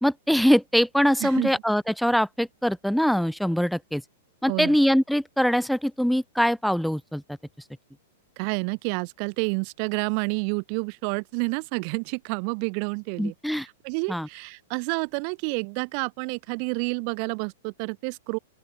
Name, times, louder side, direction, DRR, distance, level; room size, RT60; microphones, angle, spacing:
voice 1, 0.0-4.0 4.4-7.2 13.2-13.7 14.1-14.3, equal, ahead, 1.9 m, -23 dB
voice 2, 1.2-1.5 4.5-4.8 8.4-18.4, right 40 dB or more, 45° right, 1.7 m, -29 dB
open air
hypercardioid pair, 115°, 0 cm